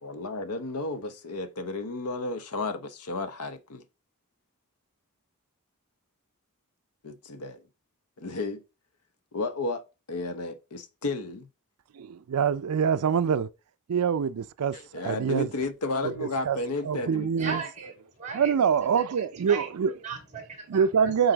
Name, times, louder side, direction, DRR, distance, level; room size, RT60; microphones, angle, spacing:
voice 1, 0.0-3.8 7.0-7.6 8.2-8.6 9.3-9.8 10.1-11.5 14.7-17.6, left 3 dB, 80° left, 0.8 m, -33 dB
voice 2, 11.9-13.5 13.9-15.5 16.0-16.6 16.8-17.6 18.3-20.0 20.7-21.3, right 7 dB, 80° right, 0.4 m, -25 dB
voice 3, 17.4-18.5 19.2-19.7 20.0-21.1, right 5 dB, 35° right, 2.3 m, -37 dB
7.9 x 4.0 x 3.9 m
head